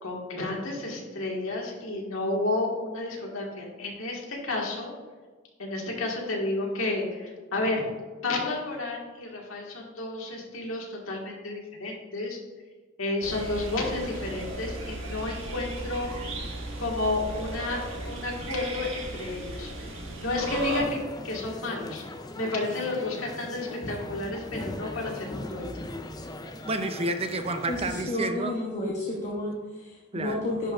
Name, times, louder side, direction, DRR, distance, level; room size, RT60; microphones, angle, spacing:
voice 1, 0.0-4.9 5.6-7.8 8.2-12.4 13.0-16.1 16.8-19.7 20.2-22.0 22.3-25.7, left 2 dB, 80° left, -1 dB, 1.7 m, -31 dB
sound 1, 13.2-20.8, right 1 dB, 70° right, 1.7 m, -36 dB
sound 2, 20.6-28.0, left 1 dB, 20° left, 0.5 m, -39 dB
voice 2, 26.6-28.5 30.1-30.4, right 2 dB, 30° right, 7 dB, 0.6 m, -30 dB
voice 3, 27.7-30.7, left 1 dB, 35° left, -3 dB, 0.9 m, -31 dB
10.5 x 5.6 x 2.4 m, 1.4 s
head